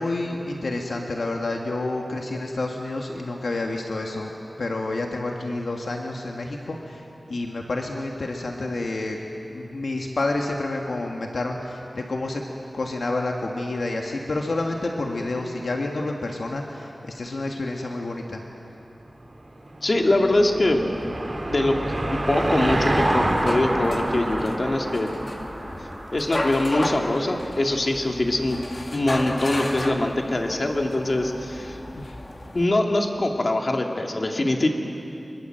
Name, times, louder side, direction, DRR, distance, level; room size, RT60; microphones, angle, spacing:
voice 1, 0.0-4.3 4.6-9.2 9.5-12.4 12.7-18.4 31.9-32.2, left 2 dB, 75° left, 1 dB, 1.7 m, -29 dB
Car passing by / Engine, 19.6-26.4, right 1 dB, 40° right, 3.6 m, -27 dB
voice 2, 19.8-20.9 21.5-21.8 22.1-25.1 26.1-28.6 28.9-31.8 32.5-34.7, left 1 dB, 50° left, 2 dB, 2.4 m, -23 dB
sound 1, 22.9-32.6, left 1 dB, 35° left, 2.0 m, -34 dB
25.0 x 22.5 x 7.8 m, 3.0 s
wide cardioid pair, 70°, 0 cm